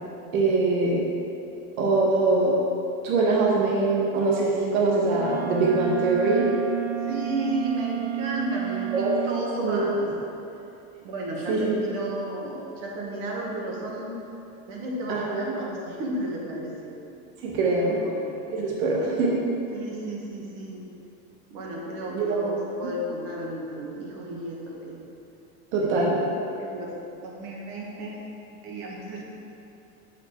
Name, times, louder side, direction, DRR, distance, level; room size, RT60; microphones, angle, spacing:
voice 1, 0.3-1.0 1.8-2.5 3.0-6.5 8.9-9.1 9.6-9.8 11.5-11.8 15.1-15.4 17.4-18.0 18.6-19.4 22.1-22.5 25.7-26.2, right 3 dB, 75° right, -3 dB, 1.5 m, -23 dB
Wind instrument woodwind instrument, 5.1-9.5, right 12 dB, 35° right, 0.6 m, -31 dB
voice 2, 7.0-10.1 11.0-14.1 14.7-17.0 18.0-18.1 19.0-19.2 19.7-20.9 21.5-25.0 25.8-25.9 26.6-28.2 28.6-29.2, right 1 dB, 50° right, -2 dB, 1.6 m, -33 dB
6.7 x 5.8 x 4.6 m, 2.8 s
supercardioid pair, 155°, 42 cm